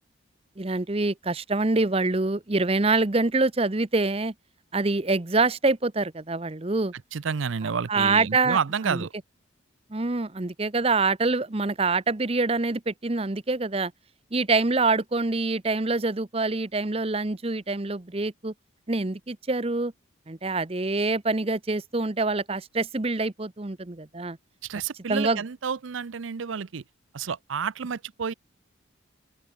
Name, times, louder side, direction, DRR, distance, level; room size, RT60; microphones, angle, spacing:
voice 1, 0.6-4.3 4.7-6.9 7.9-8.6 8.8-9.1 9.9-13.9 14.3-18.5 18.9-19.9 20.3-24.4 25.1-25.4, right 3 dB, 30° right, 0.8 m, -25 dB
voice 2, 7.1-9.1 24.6-26.8 27.1-28.3, right 6 dB, 75° right, 0.6 m, -30 dB
open air
head